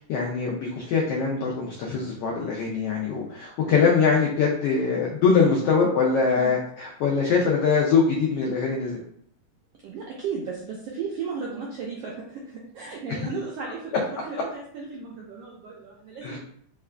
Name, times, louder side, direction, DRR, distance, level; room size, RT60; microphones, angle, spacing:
voice 1, 0.1-9.0 16.2-16.4, left 5 dB, 85° left, -1 dB, 1.3 m, -23 dB
voice 2, 9.8-16.4, right 5 dB, 85° right, -3 dB, 1.3 m, -35 dB
4.6 x 2.4 x 3.3 m, 0.64 s
omnidirectional pair, 3.4 m